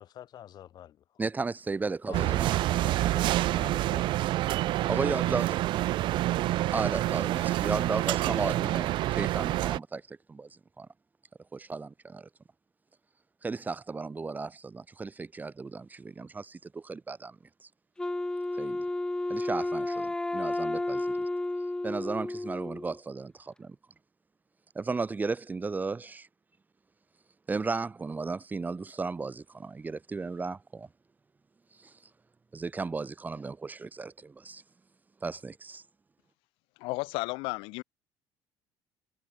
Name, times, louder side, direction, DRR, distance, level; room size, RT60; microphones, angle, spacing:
voice 1, 0.0-1.0 2.1-4.2, left 11 dB, 50° left, 7.5 m, -46 dB
voice 2, 1.2-2.6 4.9-5.6 6.7-10.9 11.5-12.3 13.4-17.4 17.6-17.7 18.5-18.8 19.3-21.1 21.8-23.8 24.7-26.3 27.5-30.9 31.8-31.9 32.5-34.6 35.2-35.8, right 4 dB, 20° right, 2.8 m, -35 dB
sound 1, 2.1-9.8, right 15 dB, 65° right, 1.4 m, -27 dB
Wind instrument woodwind instrument, 18.0-23.0, left 2 dB, 10° left, 1.0 m, -32 dB
voice 3, 36.8-37.8, left 25 dB, 85° left, 1.9 m, -33 dB
cardioid pair, 120°, 9 cm